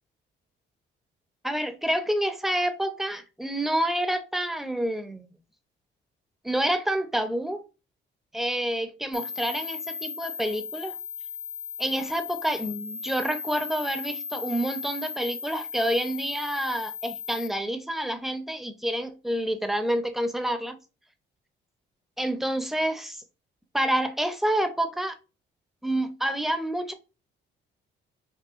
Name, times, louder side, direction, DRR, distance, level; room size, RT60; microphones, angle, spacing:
voice 1, 1.4-5.3 6.4-7.6 8.3-10.9 11.8-20.8 22.2-23.2 23.7-25.1 25.8-26.9, right 1 dB, ahead, 0.5 m, -28 dB
sound 1, 9.1-17.5, left 6 dB, 60° left, 0.6 m, -37 dB
5.5 x 2.2 x 2.5 m
cardioid pair, 90°, 20 cm